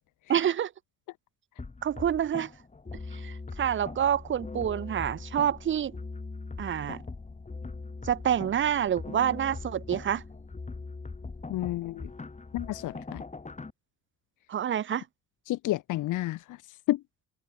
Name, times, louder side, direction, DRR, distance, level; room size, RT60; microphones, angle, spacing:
voice 1, 0.3-0.7 1.8-2.5 3.1-5.9 6.6-7.0 8.0-10.2 14.5-15.0, right 9 dB, 40° right, 0.6 m, -27 dB
sound 1, 1.6-13.7, left 3 dB, 25° left, 3.7 m, -41 dB
voice 2, 11.5-12.1 12.5-13.2 15.5-17.0, left 16 dB, 85° left, 1.4 m, -31 dB
cardioid pair, 90°, 30 cm